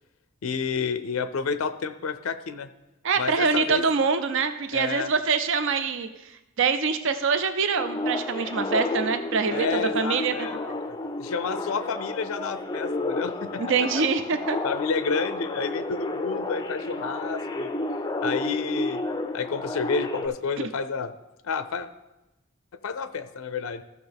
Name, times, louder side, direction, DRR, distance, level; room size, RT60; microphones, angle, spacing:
voice 1, 0.4-2.7 3.2-3.8 4.7-5.1 9.5-13.6 14.6-17.7 18.2-19.0 19.3-21.1 21.4-21.9 22.8-23.8, left 5 dB, 70° left, 12 dB, 0.5 m, -30 dB
voice 2, 3.0-6.1 6.6-9.7 9.9-10.3 13.6-14.6, right 5 dB, 60° right, 9 dB, 0.6 m, -24 dB
sound 1, 7.8-20.3, left 2 dB, 20° left, 0.4 m, -31 dB
14.5 x 6.1 x 3.5 m, 0.98 s
head